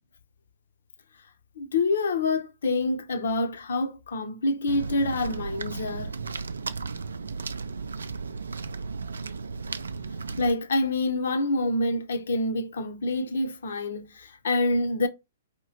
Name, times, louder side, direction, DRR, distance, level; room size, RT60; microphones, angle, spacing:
voice 1, 1.6-6.1 10.4-15.1, left 2 dB, 60° left, 0.6 m, -27 dB
sound 1, 4.7-10.5, right 4 dB, 65° right, 0.4 m, -35 dB
4.7 x 2.9 x 2.8 m
figure-of-eight pair, 115°, 0 cm